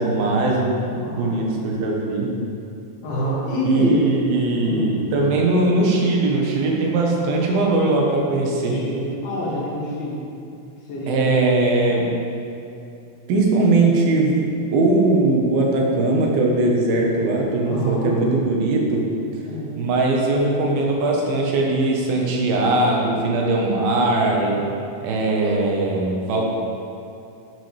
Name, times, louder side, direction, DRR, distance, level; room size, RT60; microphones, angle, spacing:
voice 1, 0.0-2.4 3.6-8.9 11.1-12.1 13.3-19.1 19.8-24.7 25.0-26.4, right 2 dB, 80° right, -1 dB, 3.0 m, -20 dB
voice 2, 1.0-1.4 3.0-4.1 4.6-4.9 8.7-10.2 10.9-11.3 17.7-18.1 19.5-19.8 24.3-24.5 25.4-25.6, equal, 80° left, -8 dB, 4.3 m, -26 dB
11.0 x 9.0 x 3.4 m, 2.6 s
omnidirectional pair, 4.3 m